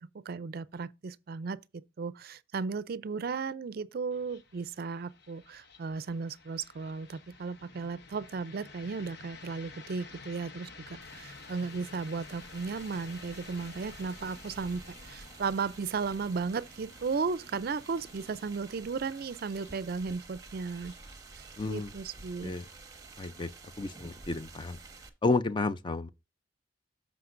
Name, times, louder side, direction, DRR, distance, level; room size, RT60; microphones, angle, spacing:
voice 1, 0.0-1.6 2.0-20.9 21.4-22.5, right 5 dB, 55° right, 0.4 m, -35 dB
sound 1, 4.1-23.1, left 4 dB, 60° left, 0.9 m, -52 dB
sound 2, 11.0-25.1, right 3 dB, 20° right, 1.0 m, -51 dB
voice 2, 21.6-21.9 22.4-22.7 23.2-23.5 23.8-24.8 25.2-26.1, left 3 dB, 25° left, 0.4 m, -31 dB
13.5 x 5.0 x 2.5 m
head